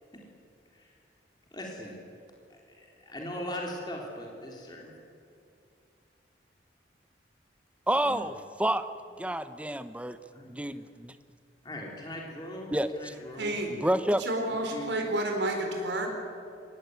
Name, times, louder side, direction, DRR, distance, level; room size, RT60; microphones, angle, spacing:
voice 1, 1.5-2.0 2.5-4.9 8.0-8.3 10.3-10.5 11.6-13.6 14.5-14.9, left 1 dB, 25° left, 3.7 m, -40 dB
voice 2, 7.9-8.9 9.2-10.2 10.5-11.1 12.7-13.1 13.7-14.2, right 1 dB, 5° right, 0.8 m, -29 dB
voice 3, 13.4-13.7 14.2-16.1, right 1 dB, 70° right, 4.3 m, -30 dB
24.0 x 18.0 x 9.4 m
head